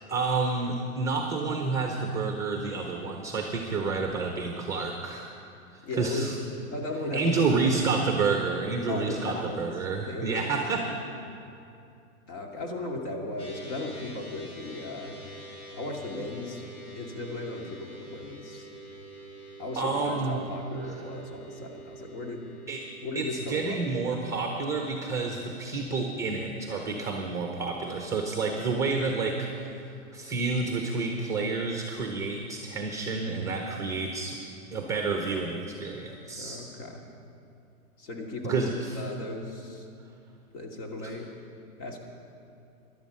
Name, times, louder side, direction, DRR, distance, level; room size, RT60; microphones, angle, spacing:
voice 1, 0.1-5.3 5.7-6.3 7.1-10.9 19.8-20.4 22.7-22.9 23.2-29.5 30.1-34.4 34.7-36.6 38.4-39.0, right 4 dB, 5° right, 3 dB, 0.5 m, -29 dB
voice 2, 5.8-6.3 6.7-7.9 8.9-9.7 10.0-10.6 11.1-11.2 12.3-15.2 15.8-16.6 17.0-18.7 19.6-22.5 23.0-23.8 36.4-37.0 38.0-38.6 39.0-39.9 40.5-41.3 41.8-42.0, left 2 dB, 55° left, 1 dB, 2.5 m, -36 dB
sound 1, 13.4-24.5, right 1 dB, 80° left, 3.0 m, -46 dB
16.0 x 11.5 x 5.4 m, 2.6 s
hypercardioid pair, 140°, 43 cm